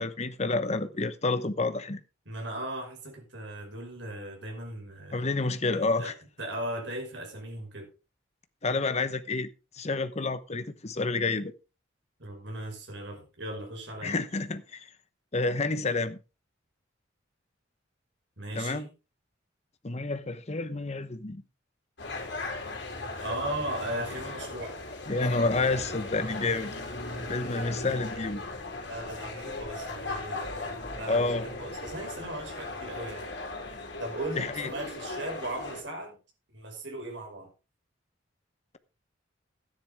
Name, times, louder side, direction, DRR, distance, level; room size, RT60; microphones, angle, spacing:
voice 1, 0.0-2.0 5.1-6.1 8.6-9.5 9.7-11.5 14.0-14.9 15.3-16.2 18.5-18.8 19.8-21.4 25.1-26.7 27.3-28.4 31.1-31.4 34.4-34.7, left 3 dB, 35° left, 0.9 m, -29 dB
voice 2, 2.3-5.3 5.8-6.1 6.4-7.9 12.2-14.2 18.4-18.9 23.2-24.8 27.1-27.5 27.9-28.2 28.9-33.3 34.0-36.2 36.5-37.5, right 1 dB, 65° right, 5.4 m, -38 dB
sound 1, 22.0-35.8, left 2 dB, 60° left, 3.3 m, -37 dB
13.0 x 10.5 x 3.5 m
head